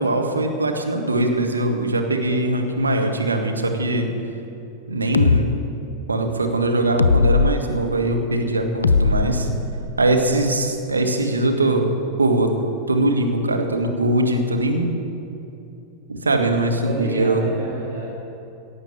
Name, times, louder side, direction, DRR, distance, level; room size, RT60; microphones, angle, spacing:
voice 1, 0.0-4.1 4.9-5.5 6.1-9.5 10.0-11.9 12.2-12.5 12.9-14.9 16.1-17.5, right 2 dB, 75° right, 3 dB, 1.5 m, -21 dB
sound 1, 5.1-5.4 7.0-7.5 8.8-10.0, left 4 dB, 75° left, 0.4 m, -18 dB
voice 2, 16.8-18.1, right 3 dB, 50° right, -4 dB, 2.2 m, -29 dB
17.0 x 7.5 x 6.7 m, 2.8 s
figure-of-eight pair, 90°, 0 cm